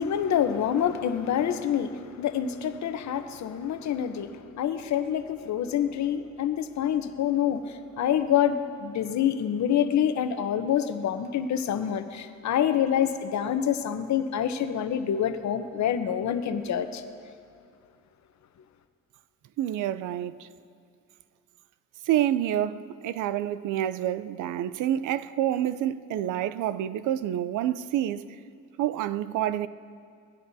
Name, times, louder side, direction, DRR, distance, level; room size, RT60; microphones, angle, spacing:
voice 1, 0.0-17.0, left 9 dB, 65° left, 0.9 m, -27 dB
voice 2, 19.6-20.5 22.0-28.4 28.8-29.7, right 11 dB, 80° right, 0.5 m, -28 dB
21.0 x 16.0 x 2.7 m
cardioid pair, 90°, 30 cm